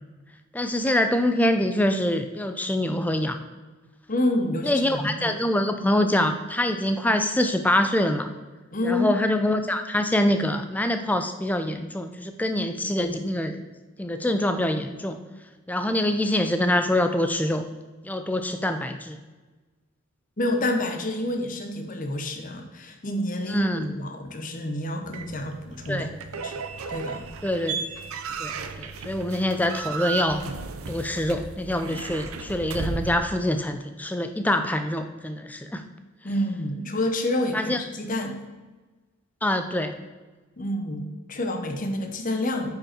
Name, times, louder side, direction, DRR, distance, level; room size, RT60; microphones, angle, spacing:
voice 1, 0.5-3.4 4.6-8.3 8.8-13.6 14.0-15.2 15.7-17.6 18.0-19.2 23.5-23.9 25.9-26.1 27.4-27.8 28.4-30.4 30.9-35.8 37.5-37.8 39.4-39.9, left 1 dB, 5° left, 7 dB, 0.4 m, -25 dB
voice 2, 4.1-5.4 8.7-9.1 20.4-26.1 26.4-26.6 26.9-27.2 36.2-38.4 40.6-42.8, left 1 dB, 40° left, 4 dB, 0.9 m, -28 dB
sound 1, 25.1-33.2, right 5 dB, 85° right, 0.7 m, -35 dB
9.3 x 5.3 x 4.4 m, 1.3 s
head